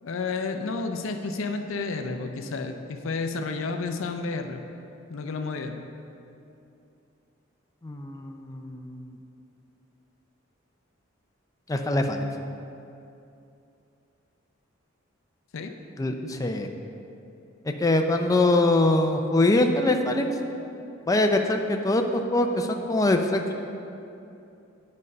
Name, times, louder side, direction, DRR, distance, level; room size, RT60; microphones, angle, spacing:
voice 1, 0.0-4.6 5.1-5.8 15.5-15.7, left 3 dB, 75° left, 6 dB, 0.5 m, -31 dB
voice 2, 7.8-9.1 11.7-12.2 16.0-16.7 17.8-20.3 21.1-23.5, left 2 dB, 15° left, 4 dB, 0.4 m, -23 dB
8.6 x 5.3 x 5.4 m, 2.7 s
head